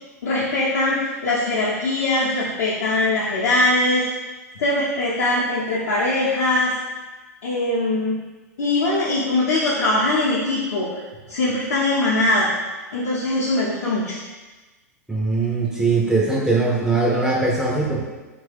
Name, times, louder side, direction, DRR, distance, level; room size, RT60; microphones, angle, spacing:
voice 1, 0.2-4.0 4.6-6.7 7.4-8.1 8.6-10.9 11.3-12.5 12.9-14.2, left 2 dB, 70° left, -9 dB, 0.7 m, -21 dB
voice 2, 15.1-18.1, right 3 dB, 5° right, -3 dB, 0.4 m, -21 dB
2.8 x 2.2 x 3.3 m, 1.2 s
hypercardioid pair, 105°, 9 cm